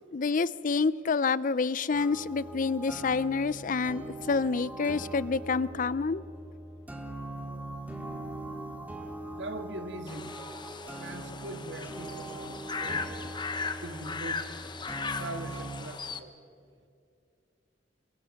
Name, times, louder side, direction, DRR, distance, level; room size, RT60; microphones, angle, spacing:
voice 1, 0.1-6.2, left 4 dB, 45° left, 18 dB, 0.5 m, -28 dB
sound 1, 1.9-15.8, right 1 dB, 10° right, 2.2 m, -41 dB
voice 2, 9.3-10.4 11.0-13.4 13.8-16.3, right 2 dB, 75° right, 8 dB, 1.7 m, -42 dB
sound 2, 10.1-16.2, left 4 dB, 25° left, 1.0 m, -38 dB
25.5 x 23.0 x 6.4 m, 2.5 s
head